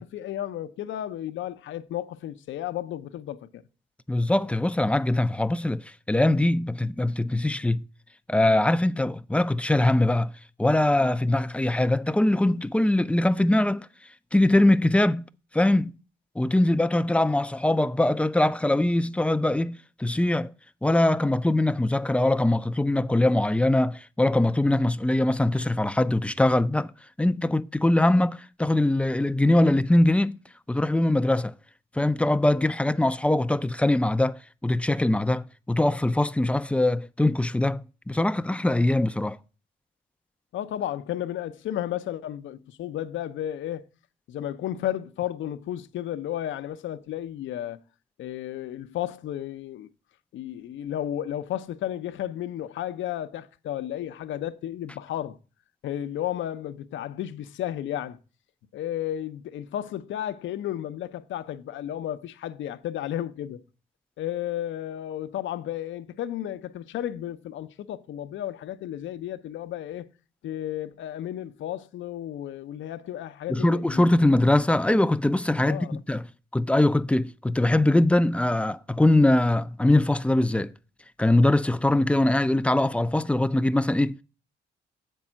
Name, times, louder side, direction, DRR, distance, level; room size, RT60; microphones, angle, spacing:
voice 1, 0.0-3.6 40.5-43.9 44.3-47.8 48.2-49.9 50.3-55.4 55.8-58.2 58.7-63.6 64.2-70.1 70.4-74.1 75.6-76.0, left 11 dB, 75° left, 0.7 m, -33 dB
voice 2, 4.1-7.8 8.3-10.3 10.6-13.9 14.3-15.2 15.5-15.9 16.4-20.5 20.8-26.9 27.2-30.4 30.7-31.5 31.9-39.4 73.5-76.3 76.5-80.7 81.2-84.2, left 1 dB, 5° left, 0.4 m, -22 dB
7.8 x 5.4 x 7.2 m
cardioid pair, 90°, 20 cm